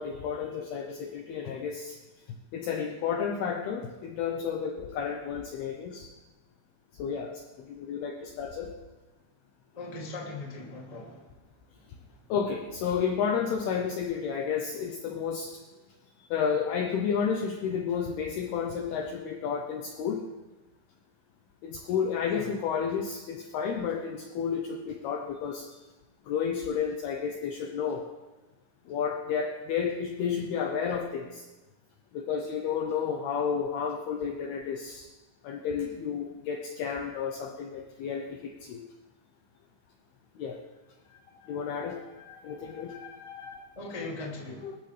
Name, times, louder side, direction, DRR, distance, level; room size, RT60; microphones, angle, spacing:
voice 1, 0.0-2.0 2.5-6.1 7.0-7.3 7.7-8.7 12.3-15.5 16.3-20.2 21.6-25.6 26.3-28.0 28.9-31.4 32.1-35.1 35.4-38.8 40.4-40.6 41.5-42.0 42.3-43.6 44.6-44.8, left 7 dB, 75° left, 2 dB, 2.4 m, -31 dB
voice 2, 9.7-11.3 22.3-22.5 43.7-44.7, left 2 dB, 15° left, -3 dB, 1.2 m, -39 dB
23.5 x 13.0 x 3.4 m, 1.1 s
omnidirectional pair, 5.7 m